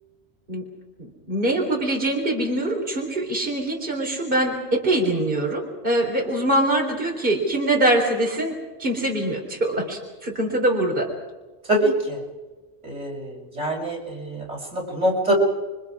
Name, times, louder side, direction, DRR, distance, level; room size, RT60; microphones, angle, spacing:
voice 1, 1.0-11.1, right 1 dB, 50° right, 0 dB, 4.1 m, -23 dB
voice 2, 11.7-12.2 12.8-15.3, right 1 dB, 90° right, -2 dB, 6.8 m, -24 dB
28.5 x 24.5 x 4.9 m, 1.2 s
omnidirectional pair, 1.2 m